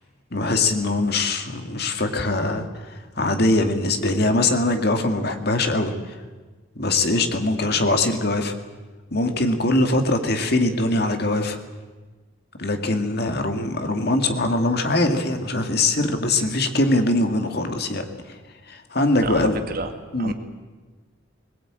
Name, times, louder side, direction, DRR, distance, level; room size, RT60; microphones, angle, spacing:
voice 1, 0.3-6.2 6.8-8.6 9.1-11.6 12.6-18.4 18.7-19.6 20.1-20.3, left 2 dB, 50° left, 6 dB, 2.1 m, -22 dB
voice 2, 19.2-19.9 20.2-20.3, right 3 dB, 45° right, 6 dB, 2.0 m, -30 dB
21.0 x 21.0 x 8.9 m, 1.3 s
head